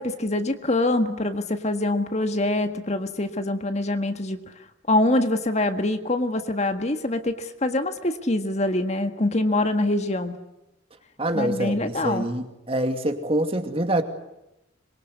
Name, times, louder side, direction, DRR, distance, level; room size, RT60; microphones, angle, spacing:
voice 1, 0.0-4.4 4.9-10.3 11.3-12.3, left 2 dB, 35° left, 1.7 m, -24 dB
voice 2, 11.2-14.0, right 1 dB, 30° right, 2.6 m, -25 dB
26.0 x 23.0 x 9.6 m
head